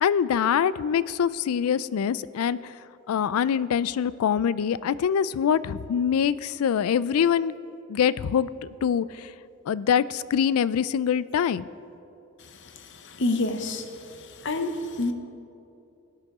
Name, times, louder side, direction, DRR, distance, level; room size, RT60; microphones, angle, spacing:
voice 1, 0.0-2.6 3.1-7.5 7.9-9.3 9.7-11.6, left 8 dB, 90° left, 18 dB, 0.3 m, -24 dB
voice 2, 13.0-13.9 14.4-15.1, left 2 dB, 55° left, 8 dB, 0.8 m, -27 dB
18.0 x 9.7 x 3.6 m, 2.7 s
head